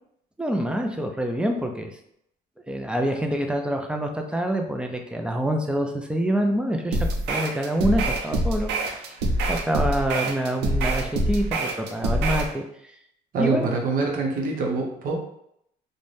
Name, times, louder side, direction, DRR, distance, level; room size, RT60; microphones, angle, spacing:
voice 1, 0.4-1.9 2.7-7.0 7.3-8.7 9.5-12.6 13.4-13.7, right 1 dB, 5° right, 4 dB, 0.4 m, -26 dB
sound 1, 6.9-12.5, right 1 dB, 85° right, 0.5 m, -25 dB
voice 2, 13.3-15.2, right 3 dB, 55° right, 0 dB, 0.8 m, -25 dB
2.5 x 2.1 x 3.3 m, 0.74 s
cardioid pair, 110°, 17 cm